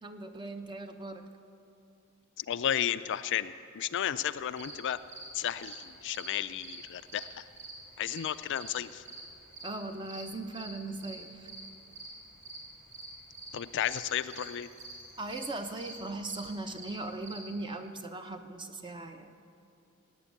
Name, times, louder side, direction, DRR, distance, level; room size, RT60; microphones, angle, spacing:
voice 1, 0.0-1.2 9.6-11.5 15.2-19.3, right 2 dB, 20° right, 6 dB, 0.8 m, -39 dB
voice 2, 2.4-5.0 5.3-7.4 8.0-9.0 13.5-14.7, left 10 dB, 55° left, 13 dB, 0.4 m, -33 dB
sound 1, 4.3-17.4, right 2 dB, 50° right, 4.3 m, -47 dB
17.5 x 8.9 x 8.4 m, 2.6 s
head